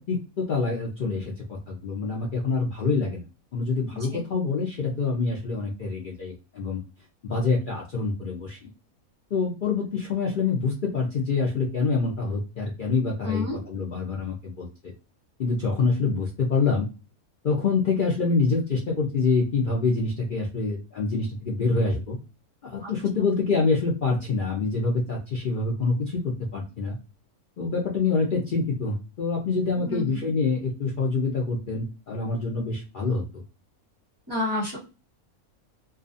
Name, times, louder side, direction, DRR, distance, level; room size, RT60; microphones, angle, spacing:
voice 1, 0.1-3.2 3.5-6.8 7.2-8.7 9.3-14.7 15.4-16.9 17.4-22.2 22.6-27.0 27.6-33.2, left 4 dB, 70° left, -2 dB, 0.5 m, -26 dB
voice 2, 13.2-13.6 22.8-22.9 29.8-30.2 34.3-34.8, left 2 dB, 20° right, -6 dB, 0.9 m, -29 dB
2.4 x 2.4 x 2.4 m, 0.32 s
omnidirectional pair, 1.5 m